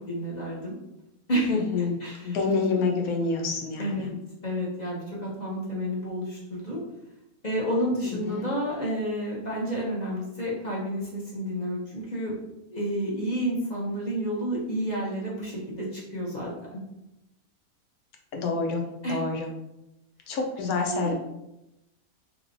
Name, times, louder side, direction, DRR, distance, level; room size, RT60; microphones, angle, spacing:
voice 1, 0.1-0.7 1.3-1.6 2.0-2.4 3.8-4.1 4.4-6.8 7.4-12.4 12.7-16.8 19.0-19.2 20.9-21.1, equal, 40° left, -5 dB, 0.6 m, -30 dB
voice 2, 1.5-2.0 2.2-4.1 8.0-8.5 18.4-18.8 19.1-19.5 20.3-21.1, left 4 dB, 80° left, 2 dB, 1.1 m, -27 dB
3.2 x 2.8 x 2.5 m, 0.90 s
omnidirectional pair, 1.5 m